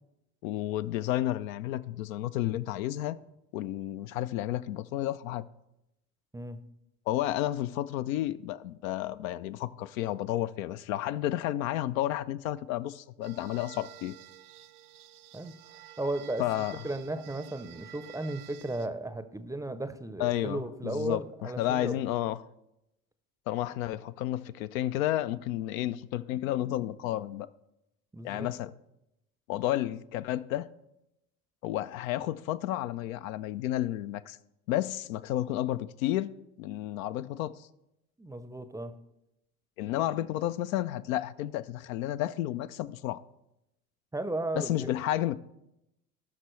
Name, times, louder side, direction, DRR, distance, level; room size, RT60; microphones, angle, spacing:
voice 1, 0.4-3.2 3.5-5.4 7.1-14.1 16.4-16.8 20.2-22.4 23.5-27.5 28.2-28.7 29.5-30.7 31.6-34.4 34.7-37.7 39.8-43.2 44.5-45.4, left 13 dB, 65° left, 0.5 m, -31 dB
sound 1, 13.2-18.9, right 12 dB, 85° right, 0.5 m, -51 dB
voice 2, 16.0-16.4 16.8-22.0 28.1-28.5 38.2-38.9 44.1-44.9, right 2 dB, 10° right, 0.6 m, -35 dB
17.5 x 6.0 x 3.2 m
figure-of-eight pair, 65°, 44 cm